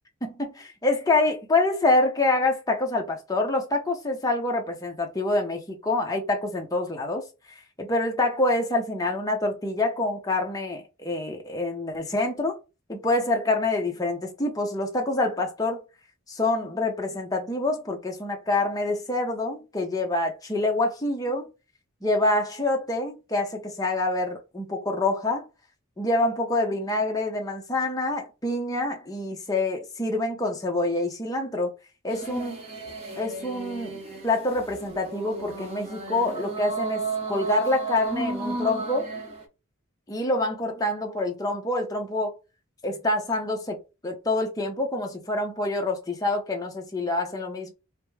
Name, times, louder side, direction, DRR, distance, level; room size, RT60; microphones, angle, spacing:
voice 1, 0.2-7.2 7.8-12.6 12.9-15.8 16.3-21.5 22.0-25.5 26.0-31.7 32.0-32.6 33.2-39.1 40.1-42.3 42.8-43.8 44.0-47.7, left 2 dB, 15° left, 0.7 m, -26 dB
sound 1, 32.1-39.4, right 3 dB, 30° right, 0.8 m, -33 dB
4.9 x 2.1 x 3.5 m
head